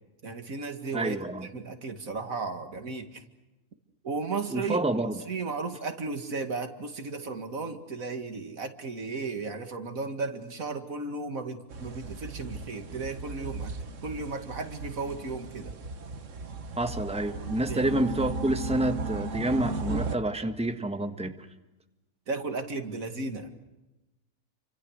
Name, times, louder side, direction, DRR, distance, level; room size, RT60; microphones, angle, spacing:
voice 1, 0.2-1.2 1.5-3.2 4.0-4.8 5.3-13.7 14.0-15.7 17.7-17.9 22.3-23.5, right 4 dB, 85° right, 7 dB, 2.5 m, -35 dB
voice 2, 0.9-1.5 4.5-5.2 16.8-21.5, right 1 dB, 5° right, 7 dB, 1.5 m, -28 dB
sound 1, 11.7-20.1, right 3 dB, 65° right, 1.6 m, -36 dB
30.0 x 25.5 x 6.5 m, 1.0 s
omnidirectional pair, 1.4 m